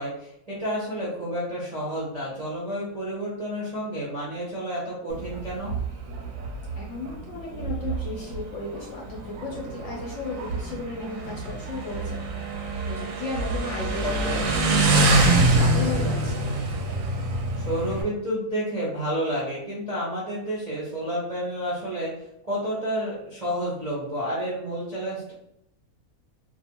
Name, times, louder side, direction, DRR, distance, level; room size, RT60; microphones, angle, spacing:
voice 1, 0.0-5.7 14.0-14.5 17.6-22.1 22.4-25.3, equal, 40° right, -8 dB, 0.5 m, -30 dB
Motorcycle, 5.1-18.0, right 2 dB, 70° right, 0.9 m, -25 dB
voice 2, 6.7-12.2 12.8-16.4, left 3 dB, 65° left, -3 dB, 0.8 m, -34 dB
2.5 x 2.3 x 2.8 m, 0.80 s
omnidirectional pair, 1.6 m